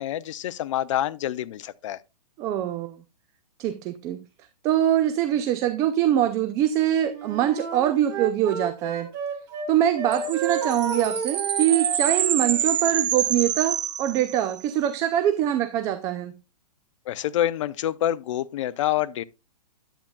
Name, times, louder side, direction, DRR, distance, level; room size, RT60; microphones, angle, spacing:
voice 1, 0.0-2.0 17.1-19.2, left 12 dB, 50° left, 0.6 m, -27 dB
voice 2, 2.4-3.0 3.6-4.2 4.6-9.1 9.7-16.3, right 11 dB, 15° right, 0.3 m, -23 dB
Wind instrument woodwind instrument, 7.1-9.7 9.9-12.7, right 6 dB, 35° right, 2.9 m, -32 dB
sound 1, 10.1-14.7, right 9 dB, 80° right, 0.8 m, -27 dB
10.0 x 8.4 x 2.2 m
hypercardioid pair, 150°, 21 cm